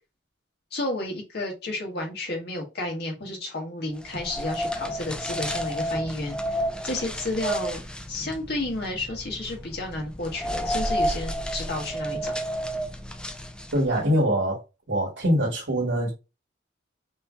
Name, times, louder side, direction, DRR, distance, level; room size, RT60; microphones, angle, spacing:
voice 1, 0.7-7.8 8.1-12.4, left 2 dB, 55° left, 1.7 m, -32 dB
sound 1, 4.0-14.0, equal, 5° left, 0.4 m, -31 dB
voice 2, 13.7-14.6 14.9-16.1, equal, 75° right, 1.8 m, -23 dB
5.4 x 3.1 x 2.6 m
head